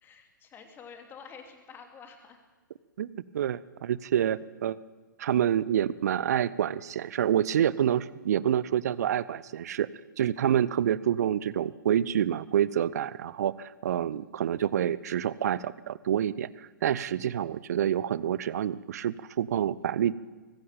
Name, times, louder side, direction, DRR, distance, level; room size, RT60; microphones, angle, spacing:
voice 1, 0.0-2.4 14.1-14.3, left 6 dB, 20° left, 5 dB, 3.1 m, -49 dB
voice 2, 3.0-4.8 5.2-9.9 10.2-20.1, right 10 dB, 50° right, 19 dB, 0.7 m, -27 dB
24.0 x 14.5 x 9.2 m, 1.3 s
figure-of-eight pair, 115°, 11 cm